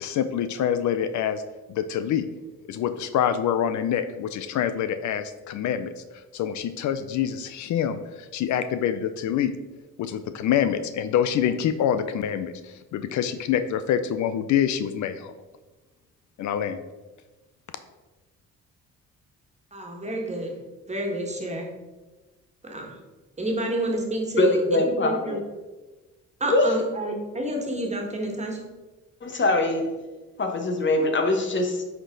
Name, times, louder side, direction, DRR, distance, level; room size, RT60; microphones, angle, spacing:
voice 1, 0.0-1.4 1.7-2.3 2.7-9.5 10.0-15.3 16.4-16.8, left 9 dB, 70° left, 11 dB, 0.5 m, -26 dB
voice 2, 19.7-20.6 20.9-21.7 22.6-22.9 23.4-25.4 26.4-28.6, right 1 dB, 20° right, 1 dB, 1.7 m, -29 dB
voice 3, 24.4-25.4 26.5-26.7 29.2-29.9 30.4-31.8, left 2 dB, 40° left, 4 dB, 1.2 m, -23 dB
9.0 x 4.4 x 3.9 m, 1.2 s
cardioid pair, 90°, 30 cm